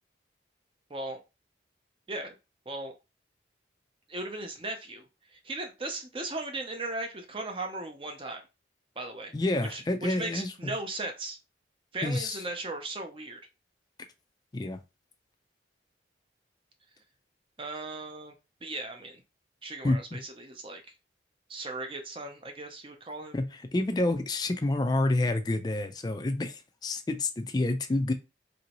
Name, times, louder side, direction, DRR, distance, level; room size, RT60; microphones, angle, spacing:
voice 1, 0.9-1.2 2.1-2.4 2.7-2.9 4.1-5.0 5.3-8.4 9.0-9.3 9.7-11.4 11.9-13.4 17.6-18.3 18.6-19.2 19.6-20.8 21.5-23.4, right 2 dB, 30° right, 0.6 m, -37 dB
voice 2, 9.3-10.7 12.0-12.4 14.5-14.8 19.8-20.2 23.3-23.5 23.7-28.1, left 2 dB, 20° left, 0.3 m, -28 dB
3.0 x 2.7 x 2.9 m
head